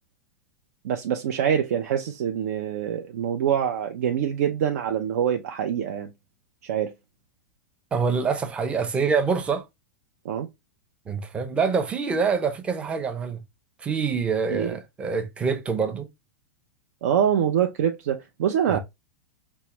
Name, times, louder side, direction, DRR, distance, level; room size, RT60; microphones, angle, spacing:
voice 1, 0.8-6.1 6.6-6.9 10.2-10.5 14.5-14.8 17.0-18.8, right 9 dB, 70° right, 0.5 m, -25 dB
voice 2, 7.9-9.6 11.1-13.4 13.8-16.1 18.7-18.8, right 5 dB, 15° right, 0.5 m, -25 dB
4.5 x 2.0 x 2.9 m
supercardioid pair, 150°, 9 cm